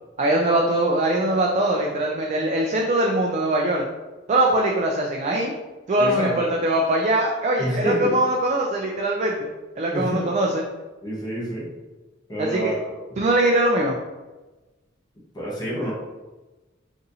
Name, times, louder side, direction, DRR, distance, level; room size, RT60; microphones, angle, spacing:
voice 1, 0.2-3.8 4.3-5.5 5.9-9.5 9.8-10.6 12.4-12.7 13.2-14.0, right 1 dB, 35° right, 0 dB, 0.3 m, -22 dB
voice 2, 6.0-6.5 7.6-8.1 9.9-10.3 11.0-11.7 12.3-12.7 15.3-15.9, equal, 20° left, -6 dB, 0.8 m, -27 dB
4.0 x 2.5 x 2.7 m, 1.2 s
head